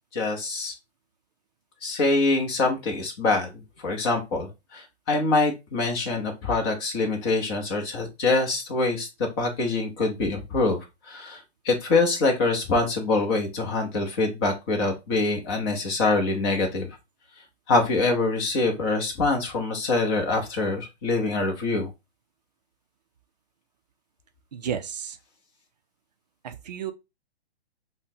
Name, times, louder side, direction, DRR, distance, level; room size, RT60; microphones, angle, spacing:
voice 1, 0.1-0.7 1.8-16.9 17.7-21.9, left 3 dB, 25° left, 0.8 m, -25 dB
voice 2, 24.5-25.2 26.4-26.9, right 8 dB, 40° right, 0.5 m, -32 dB
5.5 x 2.2 x 2.7 m
hypercardioid pair, 160°, 32 cm